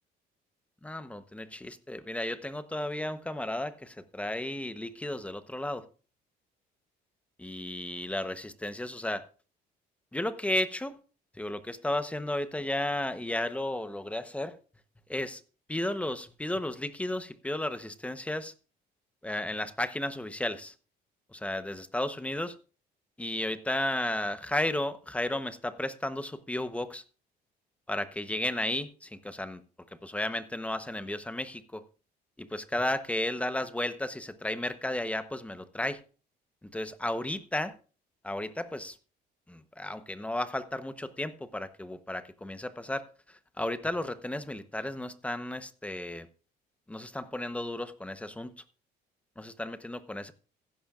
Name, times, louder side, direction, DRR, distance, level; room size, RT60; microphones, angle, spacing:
voice 1, 0.8-5.8 7.4-9.2 10.1-11.0 11.3-14.6 15.1-15.4 15.7-18.5 19.2-20.7 21.3-22.6 23.2-27.0 27.9-29.6 30.0-31.8 32.4-36.0 36.6-37.7 38.2-39.0 39.5-43.1 43.6-46.3 46.9-48.5 49.4-50.3, left 1 dB, 10° left, 0.9 m, -33 dB
15.0 x 11.5 x 2.4 m
cardioid pair, 110°, 17 cm